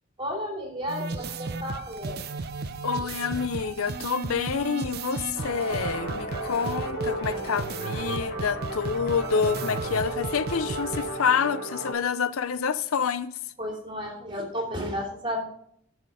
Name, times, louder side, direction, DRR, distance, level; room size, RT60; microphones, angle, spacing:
voice 1, 0.2-2.2 13.6-15.4, equal, 25° right, 2.7 m, -32 dB
sound 1, 0.9-11.1, right 4 dB, 50° right, 0.5 m, -35 dB
voice 2, 2.8-13.3, left 6 dB, 80° left, 0.5 m, -28 dB
sound 2, 5.3-11.9, right 1 dB, 45° left, 3.5 m, -34 dB
10.5 x 6.1 x 4.9 m
head